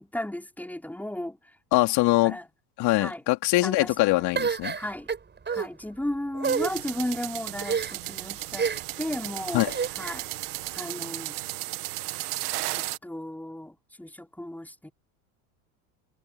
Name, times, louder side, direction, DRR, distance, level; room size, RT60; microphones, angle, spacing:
voice 1, 0.0-1.4 2.2-2.5 2.9-3.2 3.6-3.9 4.3-4.5 4.8-5.1 5.5-8.7 9.0-9.7 10.0-10.3 10.8-11.4 12.7-14.9, left 1 dB, 5° left, 5.1 m, -34 dB
voice 2, 1.7-2.4 2.8-4.8 9.5-9.7, left 19 dB, 60° left, 3.3 m, -23 dB
sound 1, 4.4-5.7 6.3-6.7 7.6-8.1 8.6-9.0 9.7-10.2, right 6 dB, 25° right, 5.4 m, -28 dB
sound 2, 6.4-13.0, right 18 dB, 85° right, 1.6 m, -35 dB
supercardioid pair, 100°, 45 cm